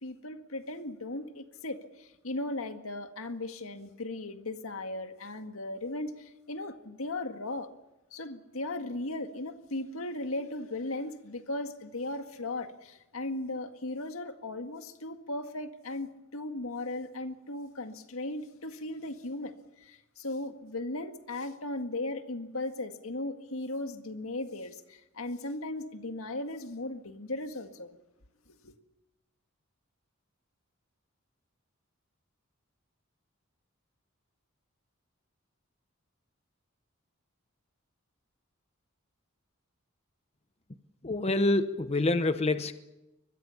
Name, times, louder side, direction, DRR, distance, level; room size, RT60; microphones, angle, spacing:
voice 1, 0.0-7.7 8.1-28.0 28.5-28.7, left 2 dB, 85° left, 1.9 m, -37 dB
voice 2, 41.0-42.7, left 2 dB, 30° left, 0.9 m, -26 dB
24.5 x 21.5 x 7.1 m
head